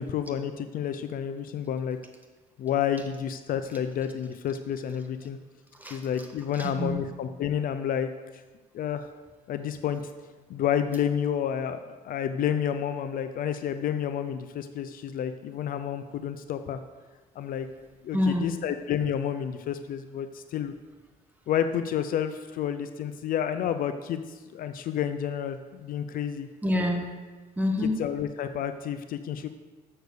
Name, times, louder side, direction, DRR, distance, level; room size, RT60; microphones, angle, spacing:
voice 1, 0.0-2.0 2.6-5.4 5.9-8.1 8.7-9.1 9.5-10.0 10.5-16.8 17.4-17.7 18.0-20.7 21.5-24.2 24.5-26.5 28.0-29.5, left 9 dB, 55° left, 9 dB, 0.5 m, -30 dB
voice 2, 5.7-7.1 17.4-18.6 26.6-27.2 27.6-27.9, left 1 dB, 10° right, 2 dB, 1.3 m, -29 dB
6.6 x 6.6 x 6.6 m, 1.3 s
cardioid pair, 110°, 17 cm